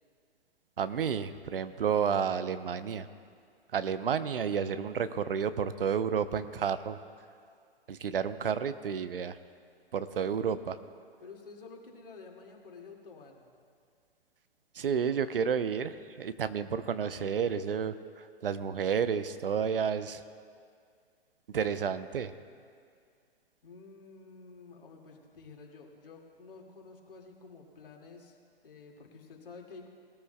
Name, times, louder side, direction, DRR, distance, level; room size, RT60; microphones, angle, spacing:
voice 1, 0.8-3.1 3.7-7.0 7.9-9.4 9.9-10.8 14.7-20.2 21.5-22.3, right 7 dB, 65° right, 12 dB, 0.7 m, -31 dB
voice 2, 11.2-13.5 23.6-28.4 28.6-29.9, left 4 dB, 65° left, 1 dB, 2.2 m, -50 dB
20.0 x 13.5 x 2.2 m, 2.2 s
figure-of-eight pair, 115°, 30 cm